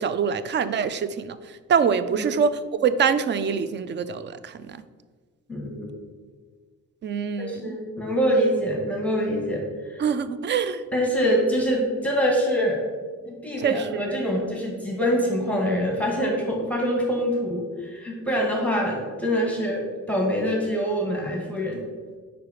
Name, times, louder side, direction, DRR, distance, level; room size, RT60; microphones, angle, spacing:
voice 1, 0.0-1.4 1.7-4.8 7.0-7.8 10.0-10.8 13.6-14.2, right 6 dB, 40° right, 13 dB, 0.4 m, -25 dB
voice 2, 5.5-5.9 7.5-10.0 10.9-12.8 13.2-21.8, equal, 5° left, -1 dB, 1.3 m, -25 dB
5.1 x 4.7 x 4.8 m, 1.5 s
cardioid pair, 90°, 30 cm